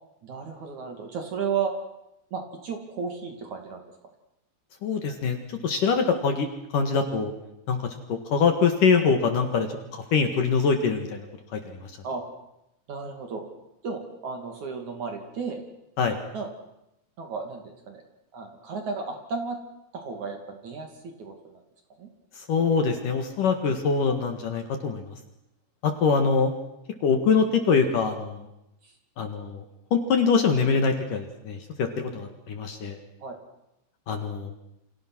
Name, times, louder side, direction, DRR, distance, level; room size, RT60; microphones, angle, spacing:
voice 1, 0.2-1.7 2.3-3.8 12.0-12.2 12.9-13.4 13.8-15.6 16.3-16.5 17.2-18.0 18.3-19.6 19.9-21.6 22.0-22.1 26.0-26.1 28.8-28.9 33.2-33.4, right 5 dB, 45° right, 4 dB, 3.6 m, -33 dB
voice 2, 4.8-5.4 5.6-6.5 6.7-7.3 7.7-7.8 8.1-9.7 9.9-11.3 11.5-11.9 16.0-16.2 22.5-25.1 25.8-26.5 27.0-28.5 29.2-29.6 29.9-33.0 34.1-34.5, left 5 dB, 55° left, 5 dB, 3.0 m, -24 dB
29.5 x 26.0 x 6.2 m, 0.85 s
omnidirectional pair, 5.2 m